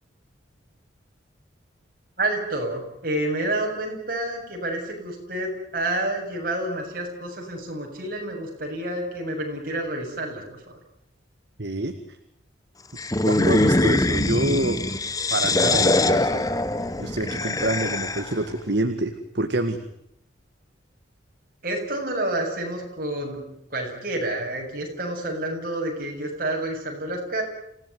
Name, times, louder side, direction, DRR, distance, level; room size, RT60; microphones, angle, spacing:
voice 1, 2.2-10.8 21.6-23.4 23.7-27.4, right 1 dB, 45° right, 1 dB, 7.7 m, -29 dB
voice 2, 11.6-12.0 13.2-14.8 15.3-16.4 17.0-19.8, right 2 dB, 65° right, 7 dB, 1.9 m, -26 dB
sound 1, 13.0-18.4, left 2 dB, 20° left, 1.0 m, -23 dB
28.0 x 17.0 x 9.6 m, 0.77 s
head